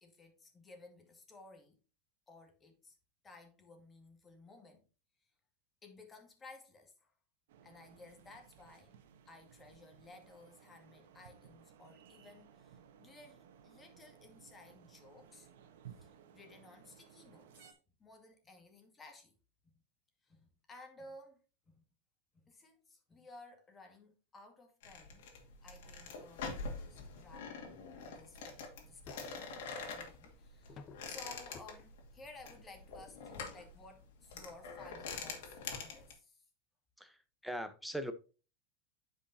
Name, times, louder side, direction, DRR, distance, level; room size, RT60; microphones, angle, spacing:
voice 1, 0.0-1.8 2.3-3.0 3.2-4.9 5.8-7.1 7.6-8.9 9.3-15.5 15.9-19.3 19.6-19.7 20.2-21.4 21.7-21.8 22.3-25.3 25.6-27.5 28.1-36.4, left 2 dB, 20° left, 2.1 m, -57 dB
sound 1, 7.5-17.7, right 8 dB, 80° right, 1.2 m, -59 dB
sound 2, 24.8-36.1, left 4 dB, 75° left, 2.3 m, -45 dB
sound 3, 29.1-29.4 30.7-31.2 31.5-31.7 32.6-32.7 33.1-33.2 33.5-33.6 34.2-34.3, left 4 dB, 35° left, 0.9 m, -53 dB
voice 2, 37.0-38.1, equal, ahead, 0.9 m, -41 dB
9.8 x 5.4 x 2.8 m
supercardioid pair, 125°, 0 cm